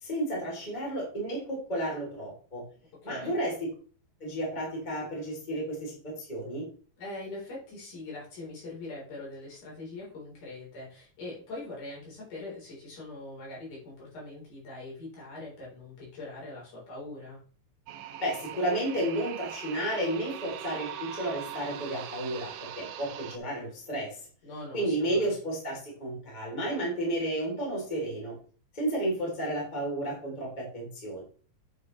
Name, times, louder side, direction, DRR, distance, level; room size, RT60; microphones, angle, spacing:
voice 1, 0.0-2.6 3.0-3.5 4.2-6.7 18.2-24.3 24.7-28.3 28.7-31.2, right 1 dB, 15° left, -3 dB, 2.9 m, -32 dB
voice 2, 3.0-3.4 7.0-17.4 22.8-22.9 24.4-25.3, left 2 dB, 60° left, -5 dB, 5.3 m, -42 dB
sound 1, 17.9-23.4, right 11 dB, 85° right, 2.4 m, -41 dB
9.6 x 6.3 x 3.2 m, 0.42 s
omnidirectional pair, 4.1 m